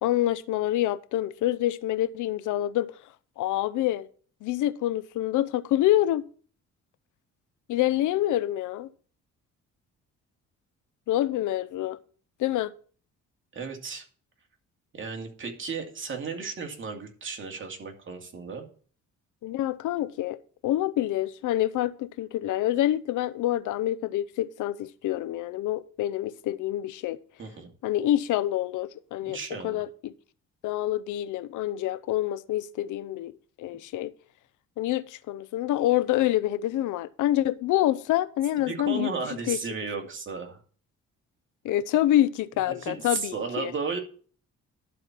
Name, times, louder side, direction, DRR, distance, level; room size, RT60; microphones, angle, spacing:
voice 1, 0.0-2.9 3.4-4.1 4.4-6.3 7.7-8.9 11.1-12.0 12.4-12.7 19.4-20.4 20.6-27.2 27.8-29.4 29.6-30.1 30.6-33.3 33.6-34.1 34.8-39.1 39.5-39.6 41.6-43.7, left 13 dB, 80° left, 0.6 m, -26 dB
voice 2, 13.5-14.0 14.9-18.7 27.4-27.7 29.3-29.8 38.7-40.6 42.7-44.0, right 4 dB, 40° right, 2.5 m, -34 dB
12.0 x 4.5 x 7.4 m
cardioid pair, 90°, 30 cm